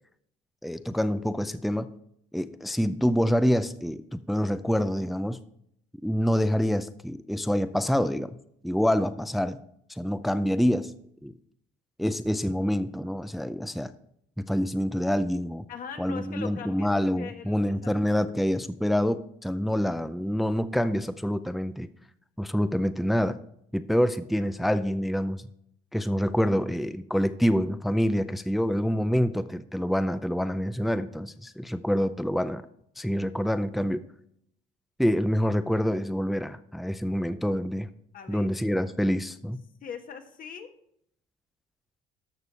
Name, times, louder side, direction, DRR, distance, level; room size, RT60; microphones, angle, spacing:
voice 1, 0.6-1.9 2.3-5.4 6.0-8.4 8.6-9.6 9.9-10.9 11.2-11.3 12.0-13.9 14.4-15.6 16.0-21.9 22.4-23.4 23.7-25.5 25.9-32.6 33.0-34.0 35.0-37.9 38.3-39.6, equal, ahead, 12 dB, 0.4 m, -26 dB
voice 2, 15.7-16.9 17.2-17.9 38.1-38.5 39.8-40.7, left 6 dB, 55° left, 6 dB, 1.5 m, -40 dB
13.0 x 6.6 x 4.2 m, 0.71 s
cardioid pair, 110°, 17 cm